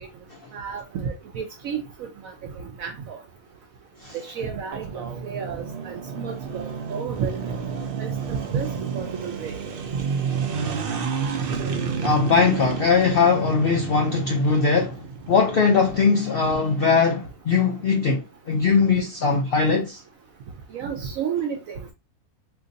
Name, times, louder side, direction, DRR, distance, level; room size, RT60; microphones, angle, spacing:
voice 1, 0.5-2.1 2.6-3.2 4.2-7.6 8.0-9.5 20.7-21.9, right 7 dB, 70° right, 1.0 m, -31 dB
sound 1, 4.7-16.1, right 6 dB, 85° right, 0.5 m, -30 dB
voice 2, 12.0-15.0 15.3-20.0, left 5 dB, 90° left, 0.5 m, -20 dB
2.8 x 2.5 x 3.8 m
omnidirectional pair, 1.6 m